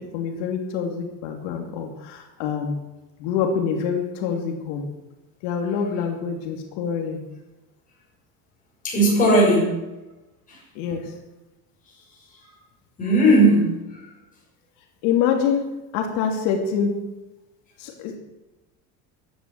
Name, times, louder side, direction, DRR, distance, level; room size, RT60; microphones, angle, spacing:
voice 1, 0.0-2.8 3.2-4.9 5.4-7.2 10.7-11.1 15.0-17.0 17.8-18.2, left 7 dB, 85° left, 2 dB, 2.7 m, -26 dB
voice 2, 8.8-9.9 10.5-10.6 13.0-14.0, right 1 dB, 20° left, -4 dB, 6.9 m, -18 dB
14.5 x 10.0 x 7.6 m, 1.0 s
cardioid pair, 180°, 39 cm